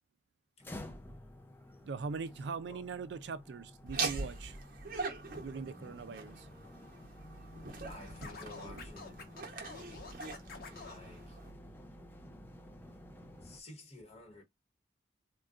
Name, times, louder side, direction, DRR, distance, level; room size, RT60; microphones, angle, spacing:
sound 1, 0.6-13.6, left 1 dB, 10° left, 0.4 m, -52 dB
voice 1, 1.8-4.6 5.4-6.5, right 5 dB, 70° right, 0.4 m, -41 dB
Laughter, 3.9-11.5, right 4 dB, 50° right, 0.8 m, -42 dB
voice 2, 7.8-9.3 10.8-11.4 13.4-14.4, left 1 dB, 35° left, 1.0 m, -51 dB
Scratching (performance technique), 8.2-11.0, left 4 dB, 55° left, 0.8 m, -48 dB
3.7 x 2.2 x 2.4 m
head